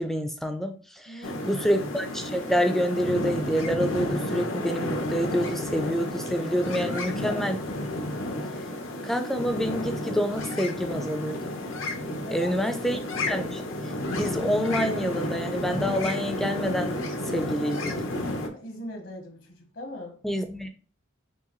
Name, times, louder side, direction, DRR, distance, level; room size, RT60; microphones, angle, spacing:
voice 1, 0.0-7.6 9.0-11.5 12.3-13.0 13.3-13.6 14.1-17.0 17.2-18.0 20.2-20.7, equal, ahead, 6 dB, 0.4 m, -27 dB
voice 2, 1.1-1.7 6.8-7.5 12.2-13.1 18.5-20.2, left 1 dB, 70° left, 3 dB, 1.1 m, -40 dB
sound 1, 1.2-18.5, left 1 dB, 90° left, 0.9 m, -31 dB
4.7 x 3.0 x 3.0 m, 0.40 s
head